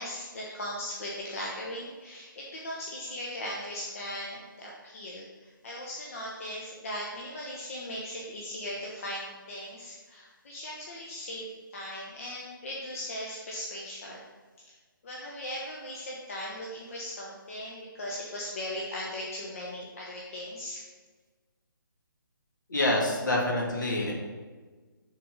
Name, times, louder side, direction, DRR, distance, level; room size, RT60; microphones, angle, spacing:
voice 1, 0.0-14.2 14.6-14.7 15.0-20.8, left 1 dB, 40° left, -3 dB, 1.0 m, -38 dB
voice 2, 22.7-24.1, left 1 dB, 60° left, -1 dB, 1.7 m, -26 dB
6.4 x 4.1 x 5.3 m, 1.4 s
figure-of-eight pair, 145°, 12 cm